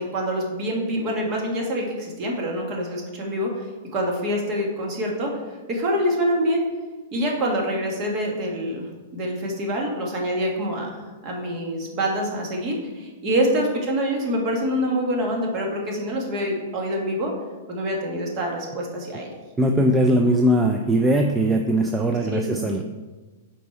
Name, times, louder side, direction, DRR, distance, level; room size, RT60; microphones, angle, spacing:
voice 1, 0.0-3.7 3.9-5.4 5.7-6.6 7.1-8.9 9.1-11.0 11.2-17.3 17.7-19.3 22.3-22.5, equal, 30° right, -1 dB, 1.6 m, -25 dB
voice 2, 19.6-22.8, right 1 dB, 10° right, 3 dB, 0.4 m, -20 dB
6.7 x 4.3 x 4.4 m, 1.3 s
hypercardioid pair, 145°, 0 cm